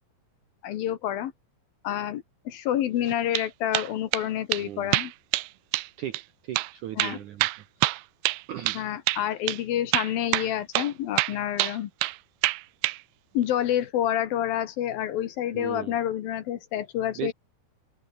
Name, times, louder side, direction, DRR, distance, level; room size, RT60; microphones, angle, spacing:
voice 1, 0.6-1.3 1.8-5.1 7.0-7.2 8.7-11.9 13.3-17.3, left 11 dB, 70° left, 2.9 m, -28 dB
sound 1, 3.1-3.5 3.7-4.3 4.5-4.6 4.9-5.5 5.7-5.9 6.1-6.2 6.6-6.7 7.0-8.8 9.1-9.2 9.5-9.6 9.9-10.9 11.2-12.2 12.4-13.0, right 20 dB, 90° right, 3.0 m, -26 dB
voice 2, 4.6-4.9 6.0-7.5 8.5-8.9 15.5-16.0 17.2-17.3, right 11 dB, 70° right, 1.9 m, -37 dB
open air
omnidirectional pair, 4.9 m